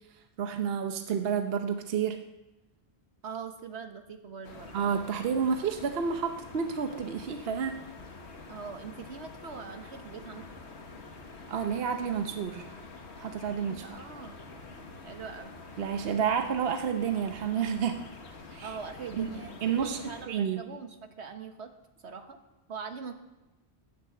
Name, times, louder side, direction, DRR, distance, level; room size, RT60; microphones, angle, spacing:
voice 1, 0.4-2.2 4.7-7.8 11.5-12.8 13.2-13.8 15.8-18.0 18.5-18.8 19.2-19.3 19.6-20.0 20.3-20.6, right 7 dB, 65° right, 6 dB, 1.0 m, -30 dB
voice 2, 3.2-4.8 8.5-10.5 13.7-14.4 15.0-15.5 18.6-21.7 22.0-22.4 22.7-23.1, right 5 dB, 85° right, 7 dB, 1.5 m, -42 dB
sound 1, 4.4-20.3, left 3 dB, 80° left, 1.6 m, -47 dB
11.0 x 9.7 x 7.8 m, 1.0 s
omnidirectional pair, 1.1 m